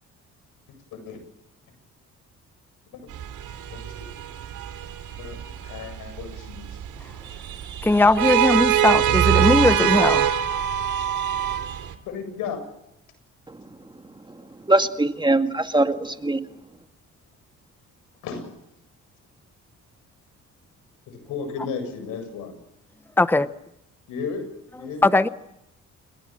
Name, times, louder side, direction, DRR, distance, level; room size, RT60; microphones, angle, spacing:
sound 1, 3.1-11.9, right 10 dB, 80° right, 3.1 m, -24 dB
voice 1, 5.2-6.8 9.8-10.0 12.1-12.6 18.2-18.5 21.3-22.6 24.1-24.4 24.8-25.2, left 5 dB, 90° left, 7.7 m, -34 dB
voice 2, 7.8-10.2 23.2-23.5 25.0-25.3, left 2 dB, 5° left, 0.9 m, -19 dB
voice 3, 14.3-16.5, right 2 dB, 15° right, 2.1 m, -23 dB
29.5 x 21.5 x 7.7 m
cardioid pair, 90°, 30 cm